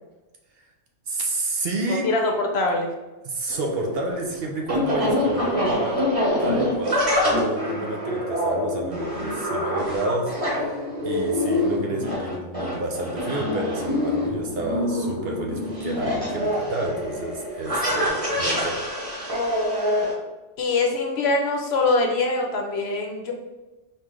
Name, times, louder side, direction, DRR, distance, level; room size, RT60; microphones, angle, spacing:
voice 1, 1.1-2.1 3.2-6.0 6.4-18.9, right 2 dB, 60° right, 1 dB, 0.9 m, -30 dB
voice 2, 1.9-2.9 20.6-23.3, left 3 dB, 65° left, 2 dB, 0.9 m, -23 dB
sound 1, 3.5-20.1, left 1 dB, 30° right, 1.3 m, -25 dB
4.4 x 3.2 x 3.7 m, 1.1 s
omnidirectional pair, 1.3 m